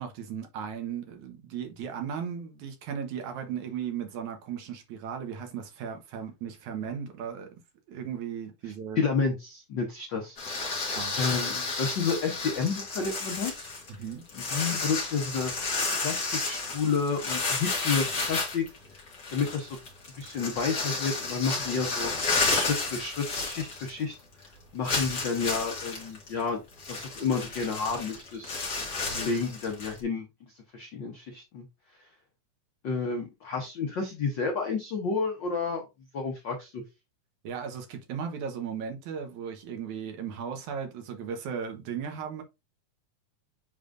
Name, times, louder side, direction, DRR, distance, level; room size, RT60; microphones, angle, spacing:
voice 1, 0.0-7.5 7.9-9.0 11.0-11.2 13.9-14.2 37.4-42.4, right 7 dB, 70° right, 2.5 m, -36 dB
voice 2, 8.9-10.4 10.6-13.7 14.3-15.5 15.9-18.6 19.3-19.8 20.2-22.1 22.5-24.1 24.7-26.6 26.9-28.5 29.1-31.6 32.8-35.8 36.1-36.8, left 5 dB, 85° left, 1.0 m, -30 dB
sound 1, 10.4-24.1 24.4-24.5 24.8-30.0, left 3 dB, 35° left, 2.2 m, -32 dB
10.5 x 3.6 x 2.6 m
omnidirectional pair, 3.6 m